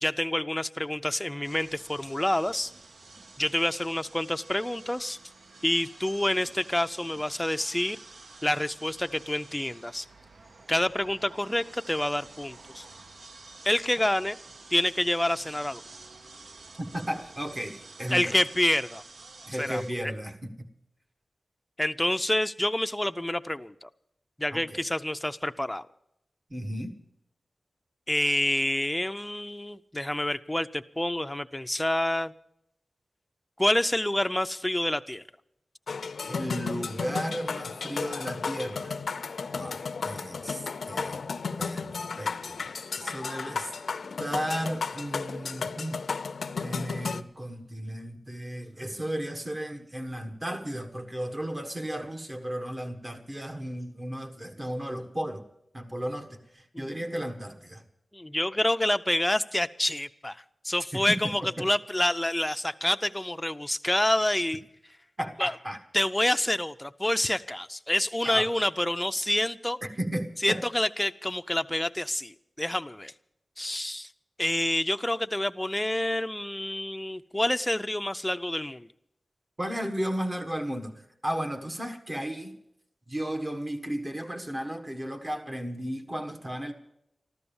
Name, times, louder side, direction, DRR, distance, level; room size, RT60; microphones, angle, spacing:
voice 1, 0.0-2.7 3.4-5.2 5.6-8.0 8.4-10.1 10.7-12.8 13.6-14.4 14.7-15.8 18.1-19.0 19.6-19.8 21.8-23.9 24.4-25.9 28.1-32.3 33.6-35.2 56.7-56.9 58.1-64.6 65.4-65.5 65.9-69.8 70.4-73.1 73.6-74.1 74.4-78.9, left 1 dB, 10° left, 10 dB, 0.5 m, -28 dB
sound 1, 1.4-19.9, right 3 dB, 60° right, 0.7 m, -50 dB
voice 2, 16.8-18.4 19.5-20.7 24.5-24.8 26.5-26.9 36.3-39.0 39.6-41.3 41.6-43.7 44.2-46.0 46.6-55.4 55.7-57.8 60.9-61.7 65.2-65.8 68.2-68.5 69.8-70.6 79.6-82.5 83.1-86.7, equal, 25° right, 5 dB, 1.4 m, -34 dB
sound 2, 35.9-47.2, left 5 dB, 85° left, 0.5 m, -34 dB
14.5 x 12.5 x 7.1 m, 0.79 s
wide cardioid pair, 105°, 0 cm